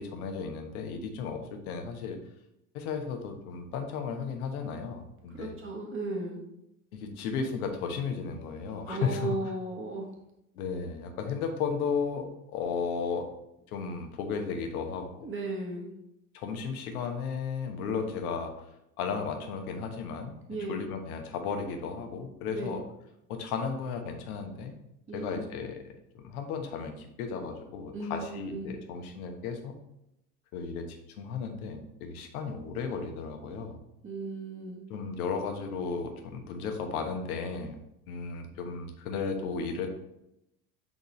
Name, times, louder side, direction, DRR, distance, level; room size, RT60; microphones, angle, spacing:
voice 1, 0.0-2.2 2.7-5.5 6.9-9.4 10.5-13.3 13.7-15.3 16.3-18.5 19.0-20.4 20.7-22.8 23.3-24.7 25.1-25.8 26.1-29.7 30.5-33.8 34.9-37.8 38.1-39.9, left 5 dB, 70° left, 4 dB, 1.2 m, -34 dB
voice 2, 5.3-6.4 8.8-10.0 15.2-15.9 20.5-20.8 22.5-22.8 25.1-25.5 27.9-28.8 34.0-34.8, right 2 dB, 25° right, 0 dB, 1.6 m, -35 dB
9.4 x 3.9 x 3.1 m, 0.83 s
figure-of-eight pair, 70°, 45 cm